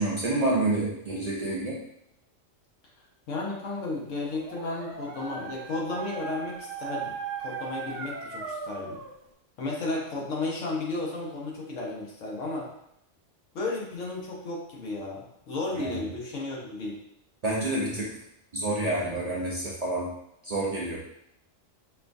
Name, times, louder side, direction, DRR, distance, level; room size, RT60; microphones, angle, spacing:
voice 1, 0.0-1.8 15.7-16.0 17.4-18.1 18.5-20.1 20.4-21.0, right 2 dB, 45° right, -5 dB, 0.5 m, -28 dB
voice 2, 3.3-9.0 9.6-12.7 13.5-17.0, left 2 dB, 80° left, -2 dB, 1.2 m, -33 dB
Dog, 4.1-9.2, right 6 dB, 85° right, 0.9 m, -38 dB
5.5 x 2.3 x 2.5 m, 0.77 s
omnidirectional pair, 1.3 m